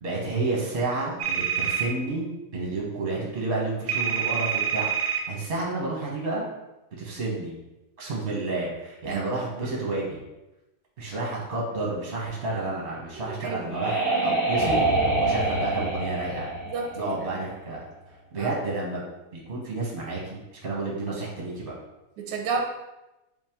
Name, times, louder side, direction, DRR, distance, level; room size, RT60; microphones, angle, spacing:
voice 1, 0.0-2.3 2.5-6.4 7.0-7.6 8.0-10.2 11.0-16.5 17.0-17.8 18.3-19.0 19.3-21.7, right 2 dB, 40° right, -4 dB, 0.9 m, -30 dB
sound 1, 1.2-1.9 3.9-5.2, right 8 dB, 70° right, 0.7 m, -26 dB
sound 2, 13.1-17.7, right 2 dB, 15° left, 1.0 m, -26 dB
voice 2, 13.4-14.1 16.7-17.1 17.3-17.4 18.3-18.5 22.2-22.6, right 5 dB, 90° right, 2 dB, 1.3 m, -32 dB
5.3 x 2.6 x 3.5 m, 0.99 s
omnidirectional pair, 1.9 m